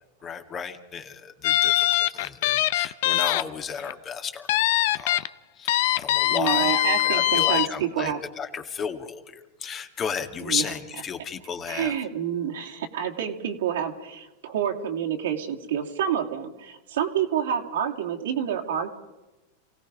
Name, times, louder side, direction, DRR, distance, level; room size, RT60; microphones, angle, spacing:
voice 1, 0.2-4.6 4.9-5.2 5.6-11.9, left 6 dB, 30° left, 6 dB, 2.0 m, -34 dB
sound 1, 1.4-3.4 3.8-3.9 4.5-5.3 5.7-7.7, left 15 dB, 65° left, 0.7 m, -22 dB
voice 2, 6.3-8.2 10.4-10.7 11.7-18.9, right 9 dB, 75° right, 1 dB, 2.8 m, -28 dB
28.0 x 17.5 x 5.3 m, 1.1 s
hypercardioid pair, 105°, 0 cm